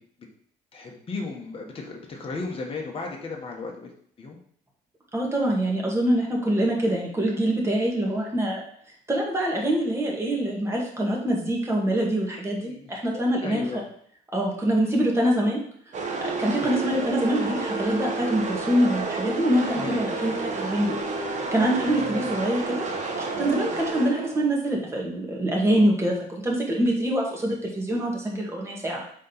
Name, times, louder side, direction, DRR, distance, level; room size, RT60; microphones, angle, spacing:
voice 1, 0.7-3.9 4.2-4.4 12.7-13.8 16.6-16.9 19.7-20.0 22.0-22.4, left 3 dB, 35° left, 0 dB, 1.4 m, -35 dB
voice 2, 5.1-8.6 9.1-13.8 14.3-15.6 16.4-21.0 21.3-22.9 23.2-29.0, right 1 dB, 15° right, -2 dB, 2.0 m, -25 dB
sound 1, 15.9-24.6, right 3 dB, 45° right, 1.3 m, -30 dB
5.1 x 3.9 x 5.6 m, 0.62 s
cardioid pair, 110°, 17 cm